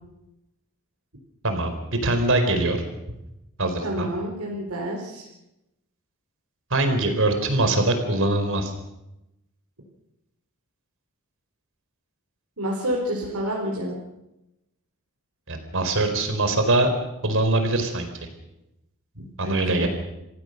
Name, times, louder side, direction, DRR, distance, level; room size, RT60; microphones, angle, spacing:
voice 1, 1.4-1.7 2.0-2.8 3.6-4.1 6.7-8.7 15.5-16.9 17.2-18.1 19.4-19.9, right 2 dB, 60° right, 6 dB, 4.2 m, -22 dB
voice 2, 3.8-5.3 12.6-13.9 19.2-19.9, equal, 85° right, -3 dB, 4.3 m, -29 dB
27.0 x 16.0 x 6.7 m, 0.91 s
head